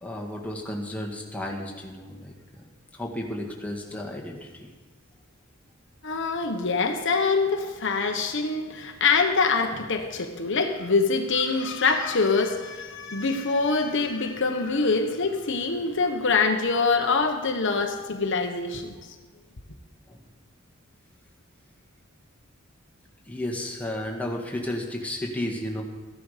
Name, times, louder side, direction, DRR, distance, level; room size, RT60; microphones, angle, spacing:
voice 1, 0.0-2.6 2.9-4.7 20.1-20.2 23.3-25.8, left 1 dB, 5° left, 0 dB, 1.7 m, -33 dB
voice 2, 6.0-18.9, left 4 dB, 60° left, 5 dB, 1.1 m, -24 dB
14.0 x 11.0 x 5.0 m, 1.3 s
head